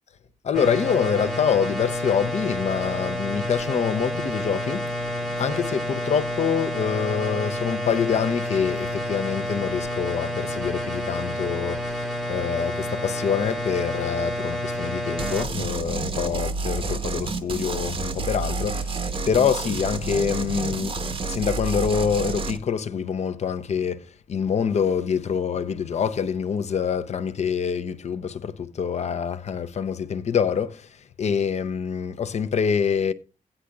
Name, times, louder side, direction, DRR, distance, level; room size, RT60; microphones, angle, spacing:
voice 1, 0.4-21.0 21.2-33.1, left 7 dB, 55° left, 0.7 m, -26 dB
sound 1, 0.5-15.4, left 1 dB, 5° left, 0.9 m, -29 dB
sound 2, 15.2-22.6, right 3 dB, 40° right, 0.8 m, -29 dB
16.0 x 9.9 x 2.3 m
wide cardioid pair, 170°, 14 cm